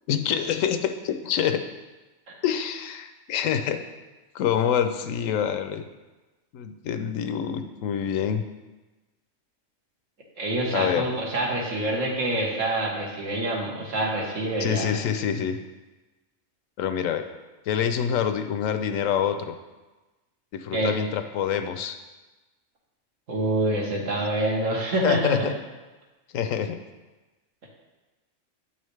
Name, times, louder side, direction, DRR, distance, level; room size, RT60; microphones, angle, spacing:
voice 1, 0.1-1.6 2.4-3.8 4.3-5.8 6.5-8.4 10.7-11.1 14.6-15.6 16.8-17.3 17.7-19.5 20.5-22.0 25.0-25.5 26.3-26.8, left 8 dB, 90° left, 8 dB, 1.0 m, -26 dB
voice 2, 10.4-14.9 20.7-20.9 23.3-25.5 27.6-27.7, right 1 dB, 75° right, -2 dB, 1.7 m, -26 dB
8.9 x 5.6 x 3.2 m, 1.2 s
omnidirectional pair, 1.3 m